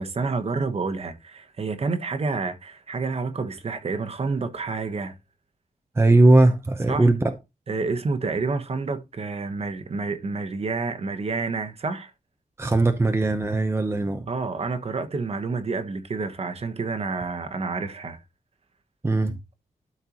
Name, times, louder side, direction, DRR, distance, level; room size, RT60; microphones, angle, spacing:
voice 1, 0.0-5.2 6.9-7.1 7.7-12.1 14.3-18.2, right 4 dB, 45° right, 1.2 m, -29 dB
voice 2, 6.0-7.3 12.6-14.3 19.0-19.4, right 2 dB, 20° right, 0.8 m, -19 dB
12.5 x 4.5 x 3.0 m
wide cardioid pair, 135°, 14 cm